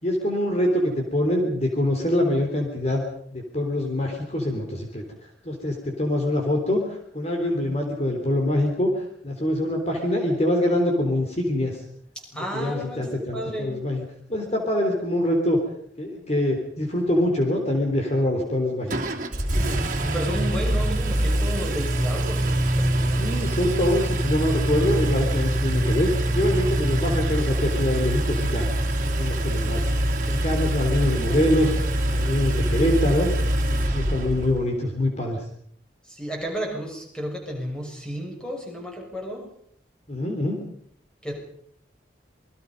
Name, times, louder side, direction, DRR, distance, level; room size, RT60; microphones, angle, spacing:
voice 1, 0.0-3.0 3.3-5.0 5.4-11.8 12.5-14.0 14.3-15.6 16.0-19.0 23.1-26.1 26.3-28.7 29.0-29.9 30.3-31.7 32.1-33.3 33.6-35.4 40.1-40.6, left 1 dB, 35° left, 2 dB, 3.7 m, -24 dB
voice 2, 12.3-13.7 19.5-23.4 36.0-39.5 41.2-41.3, equal, 5° left, 0 dB, 6.5 m, -32 dB
Engine, 18.9-34.6, right 1 dB, 45° right, 2.9 m, -24 dB
27.5 x 22.0 x 5.4 m, 0.68 s
head